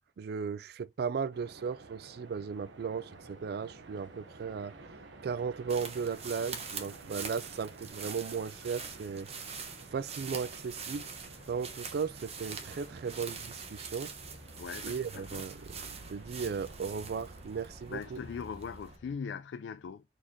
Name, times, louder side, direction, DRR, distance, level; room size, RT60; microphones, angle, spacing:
voice 1, 0.2-4.7 5.2-9.3 9.9-11.0 11.5-14.1 14.8-15.6 16.1-18.2, right 6 dB, 60° right, 0.3 m, -36 dB
sound 1, 1.3-18.4, right 3 dB, 85° right, 0.8 m, -53 dB
sound 2, 3.1-19.1, equal, 45° left, 1.9 m, -57 dB
sound 3, 5.7-19.0, right 5 dB, 35° right, 0.8 m, -44 dB
voice 2, 14.6-15.4 17.9-20.0, left 6 dB, 75° left, 0.3 m, -40 dB
4.2 x 3.1 x 3.5 m
head